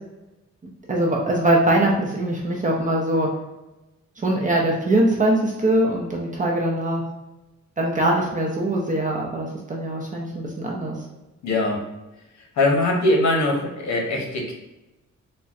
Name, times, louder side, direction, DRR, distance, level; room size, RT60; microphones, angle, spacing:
voice 1, 0.9-3.3 4.2-7.0 7.8-10.9, right 1 dB, 25° right, -2 dB, 0.5 m, -22 dB
voice 2, 11.4-11.8 12.5-14.5, left 2 dB, 70° left, 0 dB, 0.8 m, -21 dB
4.0 x 2.1 x 2.4 m, 1.0 s
cardioid pair, 120°, 29 cm